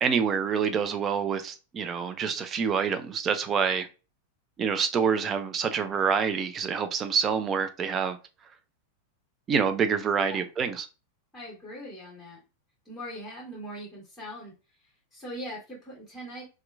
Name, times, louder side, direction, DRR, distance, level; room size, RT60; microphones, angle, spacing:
voice 1, 0.0-3.9 4.6-8.2 9.5-10.9, right 6 dB, 25° right, 0.4 m, -27 dB
voice 2, 11.3-12.4 12.8-14.5 15.1-16.4, equal, 10° left, 1.4 m, -41 dB
2.9 x 2.3 x 2.3 m
figure-of-eight pair, 90°, 0 cm